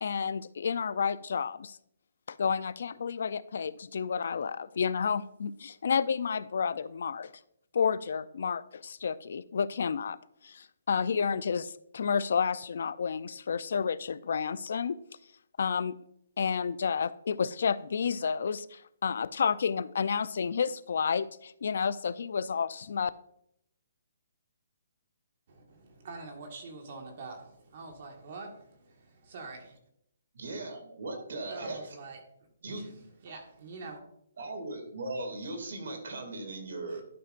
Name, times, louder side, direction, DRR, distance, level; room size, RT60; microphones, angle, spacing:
voice 1, 0.0-1.8 2.3-7.3 7.7-10.2 10.4-15.0 15.6-16.0 16.4-23.1, left 6 dB, 60° left, 0.4 m, -30 dB
voice 2, 25.5-29.8 31.5-32.5 32.7-34.0 36.9-37.0, right 3 dB, 45° right, 1.6 m, -45 dB
voice 3, 30.3-31.9 32.6-33.0 34.4-37.0, right 2 dB, 65° right, 2.4 m, -38 dB
12.0 x 5.8 x 2.5 m
hypercardioid pair, 165°, 0 cm